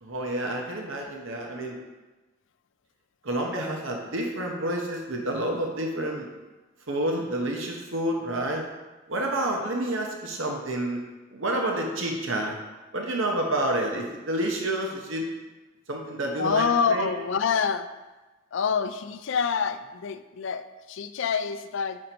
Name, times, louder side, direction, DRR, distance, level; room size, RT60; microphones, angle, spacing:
voice 1, 0.0-1.8 3.2-6.3 6.9-8.6 9.1-11.0 11.3-12.6 12.9-15.3 15.9-17.1, right 1 dB, 70° right, 1 dB, 0.9 m, -29 dB
voice 2, 16.4-17.9 18.5-22.0, left 6 dB, 65° left, 10 dB, 0.4 m, -26 dB
6.4 x 5.1 x 4.4 m, 1.2 s
head